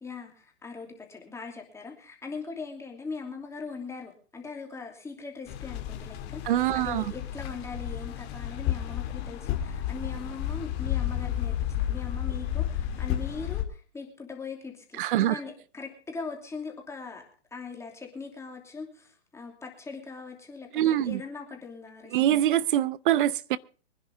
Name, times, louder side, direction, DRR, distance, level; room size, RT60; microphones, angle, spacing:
voice 1, 0.0-17.2 17.5-22.2, left 4 dB, 10° left, 2.8 m, -40 dB
sound 1, 5.5-13.6, left 11 dB, 30° left, 2.0 m, -32 dB
voice 2, 6.5-7.0 15.0-15.4 20.7-21.2 22.1-23.6, right 12 dB, 50° right, 0.8 m, -24 dB
24.5 x 10.5 x 3.5 m
hypercardioid pair, 130°, 34 cm